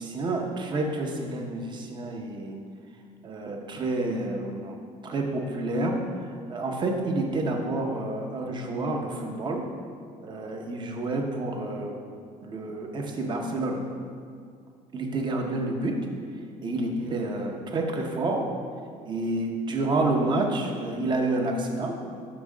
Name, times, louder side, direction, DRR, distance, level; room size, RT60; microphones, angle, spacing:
voice 1, 0.0-2.6 3.2-4.8 5.0-9.7 10.2-12.0 12.4-13.9 14.9-16.0 16.6-18.5 19.0-22.0, right 2 dB, 30° right, 2 dB, 0.7 m, -29 dB
6.1 x 3.6 x 6.1 m, 2.2 s
cardioid pair, 145°, 15 cm